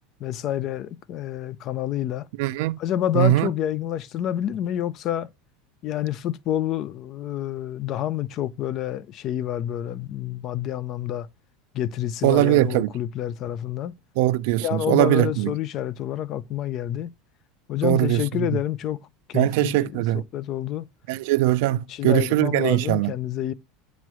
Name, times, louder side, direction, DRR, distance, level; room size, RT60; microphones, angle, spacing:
voice 1, 0.2-2.3 2.8-5.3 5.8-11.3 11.7-13.9 14.6-17.1 17.7-19.0 19.3-20.9 21.6-23.5, left 12 dB, 45° left, 0.5 m, -28 dB
voice 2, 2.4-2.8 3.1-3.5 12.2-12.9 14.2-15.5 17.8-18.2 19.3-20.2 21.1-23.1, right 16 dB, 70° right, 0.4 m, -21 dB
8.2 x 3.0 x 6.1 m
supercardioid pair, 135°, 0 cm